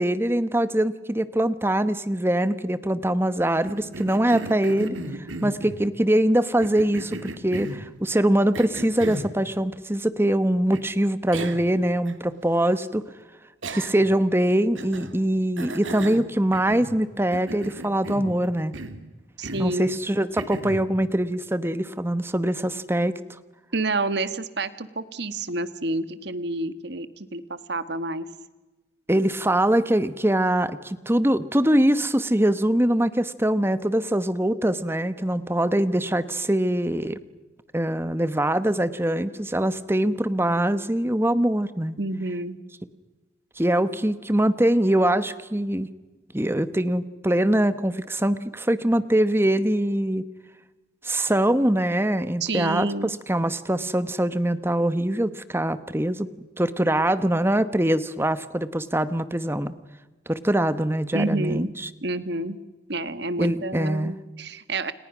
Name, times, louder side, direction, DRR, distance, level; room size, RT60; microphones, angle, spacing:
voice 1, 0.0-13.0 13.7-18.7 19.6-23.1 29.1-37.2 37.7-42.0 43.6-45.9 46.3-50.3 51.0-56.3 56.6-59.7 60.3-61.9 63.4-64.2, right 1 dB, 10° right, 13 dB, 1.0 m, -23 dB
Cough, 3.6-5.8 6.6-7.9 8.5-9.3 10.7-10.8 11.3-11.7 12.1-12.2 13.6-14.2 14.7-15.1 15.6-17.0 17.3-18.4 18.7-19.0 19.4-19.7 20.4-20.8, right 2 dB, 85° right, 2.6 m, -35 dB
voice 2, 19.4-20.0 23.7-28.3 42.0-42.6 52.4-53.1 61.1-61.7 62.0-62.6 62.9-64.9, right 2 dB, 60° right, 12 dB, 1.6 m, -29 dB
29.5 x 29.5 x 6.1 m, 1.2 s
head